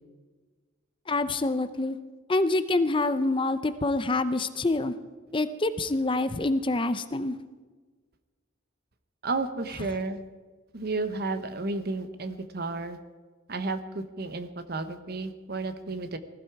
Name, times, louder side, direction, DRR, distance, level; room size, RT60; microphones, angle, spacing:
voice 1, 1.1-2.0 2.3-4.9 5.3-7.4, left 2 dB, 25° left, 12 dB, 0.6 m, -26 dB
voice 2, 9.2-10.2 10.7-13.0 13.5-16.2, right 3 dB, 50° right, 10 dB, 1.1 m, -32 dB
20.0 x 14.5 x 4.7 m, 1.4 s
head